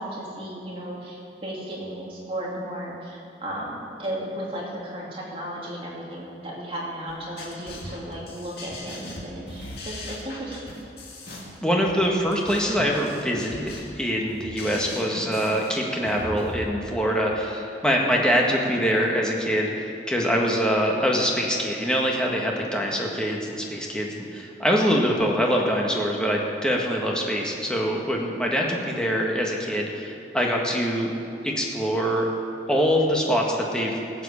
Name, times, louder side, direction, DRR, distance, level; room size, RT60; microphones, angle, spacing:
voice 1, 0.0-10.8, right 1 dB, 30° right, -4 dB, 2.6 m, -35 dB
sound 1, 7.1-16.7, left 1 dB, 65° left, 2.3 m, -39 dB
voice 2, 11.6-31.1 31.4-32.2 32.7-34.0, equal, 5° left, -2 dB, 1.5 m, -24 dB
16.0 x 8.0 x 6.6 m, 2.6 s
head